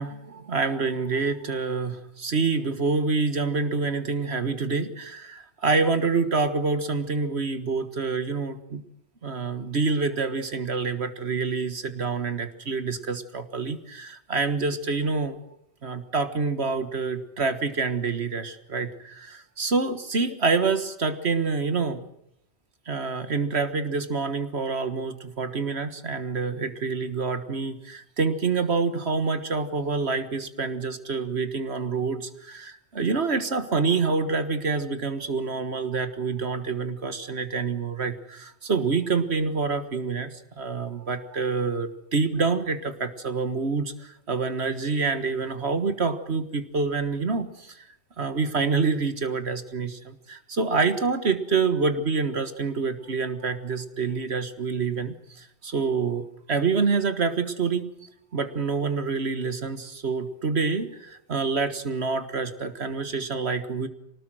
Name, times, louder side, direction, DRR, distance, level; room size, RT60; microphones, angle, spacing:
voice 1, 0.0-8.8 9.2-15.4 15.8-22.0 22.9-47.8 48.2-57.9 58.3-63.9, right 4 dB, 75° right, 10 dB, 1.8 m, -27 dB
25.0 x 19.5 x 7.7 m, 0.77 s
omnidirectional pair, 1.1 m